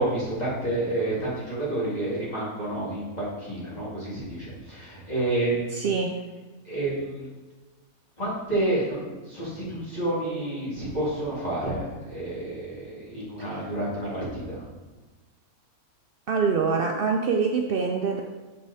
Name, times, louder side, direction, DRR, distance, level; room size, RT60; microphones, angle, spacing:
voice 1, 0.0-5.8 6.6-7.3 8.2-14.6, right 1 dB, 25° left, -8 dB, 2.6 m, -29 dB
voice 2, 5.7-6.1 13.4-13.7 16.3-18.2, right 5 dB, 85° right, 2 dB, 0.5 m, -25 dB
7.2 x 4.7 x 4.1 m, 1.3 s
omnidirectional pair, 1.6 m